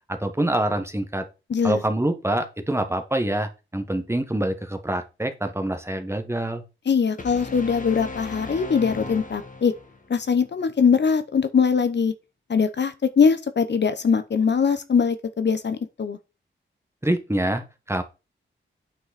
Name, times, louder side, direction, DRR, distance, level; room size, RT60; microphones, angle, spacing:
voice 1, 0.1-1.2 1.6-6.6 17.0-18.0, right 1 dB, 10° right, 1.4 m, -26 dB
voice 2, 1.5-1.8 6.9-9.7 10.1-12.1 12.5-16.2, left 6 dB, 60° left, 0.9 m, -22 dB
sound 1, 7.2-10.1, left 3 dB, 40° left, 1.6 m, -36 dB
9.1 x 5.5 x 4.2 m
wide cardioid pair, 90°, 21 cm